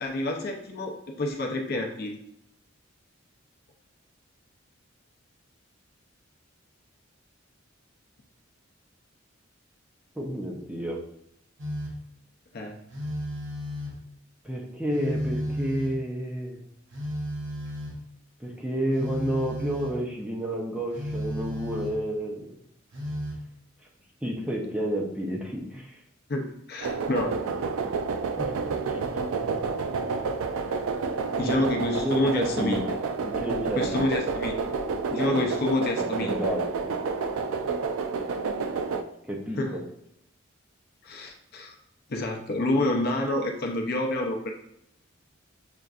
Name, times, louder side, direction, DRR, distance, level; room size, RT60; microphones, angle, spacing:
voice 1, 0.0-2.2 12.5-12.8 26.3-27.4 30.5-30.6 31.4-32.8 33.8-34.5 35.1-36.4 39.6-39.8 41.0-41.8 42.1-44.5, left 1 dB, 50° left, 2 dB, 0.6 m, -28 dB
voice 2, 10.2-11.0 14.4-16.6 18.4-22.5 24.2-26.0 28.4-28.5 28.9-29.0 31.4-31.6 32.0-32.9 33.2-34.0 35.1-35.4 36.2-36.9 39.2-39.6, right 1 dB, 5° right, -2 dB, 0.6 m, -30 dB
Telephone, 11.6-12.1 12.9-14.1 14.9-16.1 16.9-18.1 18.9-20.0 20.9-22.2 22.9-23.5, equal, 60° right, 0.8 m, -34 dB
sound 1, 26.8-39.0, right 4 dB, 85° right, 0.4 m, -29 dB
6.6 x 2.5 x 2.4 m, 0.78 s
head